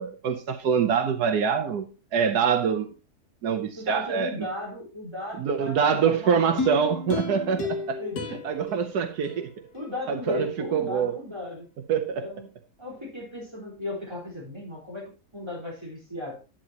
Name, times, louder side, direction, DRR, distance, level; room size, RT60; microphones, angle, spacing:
voice 1, 0.0-2.9 3.4-4.3 5.4-8.0 8.4-9.5 10.1-11.2 11.9-12.2, right 7 dB, 85° right, 1.5 m, -25 dB
voice 2, 3.8-6.8 8.0-8.4 9.7-11.6 12.2-12.5 12.8-16.4, left 1 dB, 15° right, 4.2 m, -36 dB
sound 1, 6.6-9.9 10.3-10.4, left 4 dB, 80° left, 2.1 m, -33 dB
10.5 x 10.0 x 2.9 m
omnidirectional pair, 1.6 m